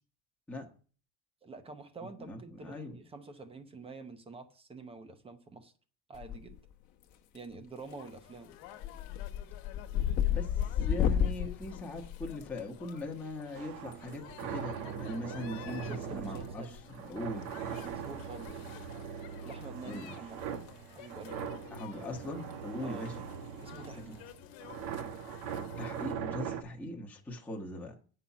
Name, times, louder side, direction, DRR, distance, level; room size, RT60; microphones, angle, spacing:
voice 1, 1.4-5.7 6.1-6.6 7.3-8.5 15.7-16.8 17.7-18.7 19.4-20.5 20.9-21.4 22.8-23.1 23.6-24.3, right 3 dB, 10° right, 0.7 m, -47 dB
voice 2, 2.2-3.0 9.9-10.0 10.3-10.5 10.8-17.5 19.8-20.2 21.7-23.2 25.8-27.9, left 1 dB, 5° left, 1.0 m, -40 dB
sound 1, 6.1-6.7 7.0-7.5 7.9-8.2 8.5-12.9 14.3-14.4 15.7-16.5 16.7-17.0 17.5-17.6 17.8-17.9 18.3-18.5 18.8-18.9 20.4-20.7, left 9 dB, 35° left, 1.1 m, -32 dB
sound 2, 7.8-26.1, left 12 dB, 60° left, 1.3 m, -53 dB
sound 3, 13.5-26.6, right 7 dB, 90° right, 1.7 m, -41 dB
9.1 x 5.7 x 7.1 m
cardioid pair, 175°, 49 cm